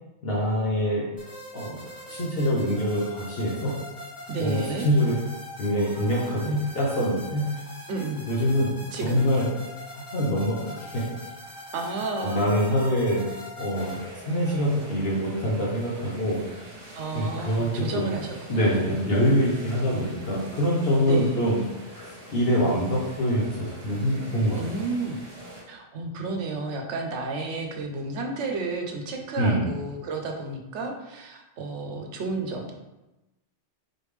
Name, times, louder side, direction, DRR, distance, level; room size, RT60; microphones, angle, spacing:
voice 1, 0.2-1.0 1.5-1.8 2.1-3.7 4.4-5.2 5.6-7.4 8.3-8.7 9.0-9.5 10.1-11.0 12.2-16.4 17.1-18.1 18.5-21.6 21.9-24.6 29.4-29.7, equal, 60° left, -5 dB, 1.0 m, -25 dB
sound 1, 1.2-14.0, equal, 5° right, 1.1 m, -42 dB
voice 2, 4.3-4.9 7.9-8.2 8.9-9.4 11.7-12.5 16.9-18.9 19.9-20.1 21.0-21.3 24.6-25.2 25.7-32.7, right 3 dB, 80° right, 3 dB, 1.0 m, -32 dB
sound 2, 13.7-25.6, right 1 dB, 55° right, 1.4 m, -44 dB
4.1 x 3.4 x 3.2 m, 1.0 s
omnidirectional pair, 1.2 m